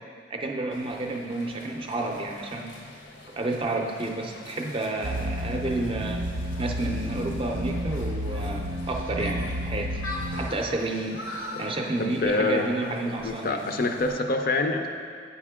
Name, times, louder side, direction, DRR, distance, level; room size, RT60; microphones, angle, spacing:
voice 1, 0.3-2.7 3.4-6.3 6.6-10.0 10.3-11.2 11.6-13.7, right 2 dB, 30° right, 2 dB, 0.5 m, -30 dB
sound 1, 0.7-14.2, left 2 dB, 80° left, 0.8 m, -43 dB
sound 2, 5.0-10.5, equal, 80° right, 0.5 m, -31 dB
voice 2, 12.0-12.7 13.1-14.9, left 2 dB, 50° left, 5 dB, 0.4 m, -26 dB
8.2 x 5.0 x 3.6 m, 2.1 s
head